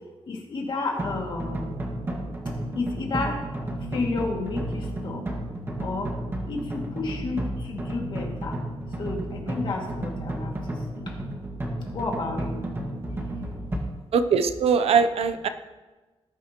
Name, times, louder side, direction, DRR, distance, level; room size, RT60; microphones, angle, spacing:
voice 1, 0.3-1.7 2.7-3.4 3.9-5.3 5.8-6.1 6.5-8.6 9.0-10.5 10.9-11.2 11.9-12.6 13.7-13.8, left 3 dB, 50° left, 0 dB, 2.3 m, -31 dB
sound 1, 1.0-13.8, right 1 dB, 20° right, 1.8 m, -32 dB
voice 2, 14.1-15.5, right 6 dB, 80° right, 10 dB, 0.8 m, -21 dB
19.0 x 11.0 x 3.0 m, 1.2 s
wide cardioid pair, 170°, 10 cm